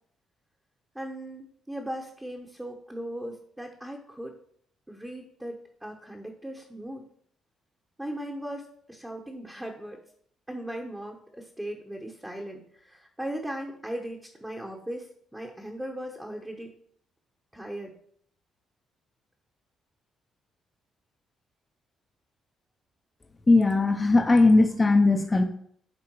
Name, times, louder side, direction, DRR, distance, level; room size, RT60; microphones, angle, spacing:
voice 1, 0.9-4.4 4.9-7.1 8.0-10.0 10.5-16.7 17.5-17.9, right 1 dB, 10° right, 0 dB, 1.2 m, -38 dB
voice 2, 23.5-25.4, left 3 dB, 25° left, 4 dB, 0.9 m, -19 dB
9.5 x 3.7 x 4.8 m, 0.62 s
cardioid pair, 90°, 0 cm